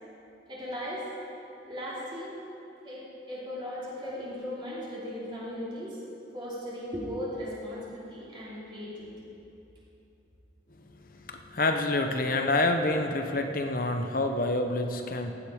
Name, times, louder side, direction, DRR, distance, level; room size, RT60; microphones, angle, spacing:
voice 1, 0.5-1.1 1.6-2.4 2.8-6.0 6.3-9.2, equal, 25° right, -8 dB, 3.1 m, -37 dB
voice 2, 11.2-15.3, left 2 dB, 50° left, 6 dB, 0.9 m, -27 dB
15.0 x 10.5 x 4.9 m, 2.8 s
head